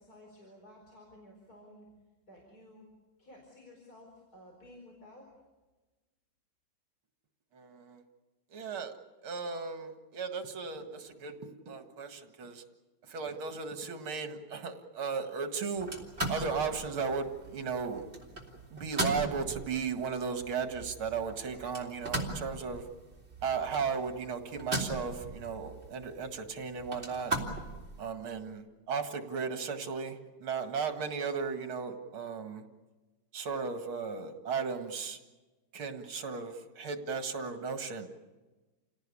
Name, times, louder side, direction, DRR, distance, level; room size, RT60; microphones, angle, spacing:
voice 1, 0.0-1.9 2.3-2.9 3.2-5.3 27.9-28.2, left 1 dB, 45° left, -1 dB, 5.3 m, -54 dB
voice 2, 7.5-8.0 8.5-8.9 9.2-11.4 11.7-12.6 13.0-15.9 16.3-18.0 18.7-22.8 23.4-27.3 28.0-32.6 33.3-35.2 35.7-38.1, right 5 dB, 75° right, 6 dB, 2.7 m, -35 dB
sound 1, 15.8-28.1, right 2 dB, 30° right, 3.8 m, -39 dB
29.0 x 17.5 x 8.5 m, 1.2 s
omnidirectional pair, 2.4 m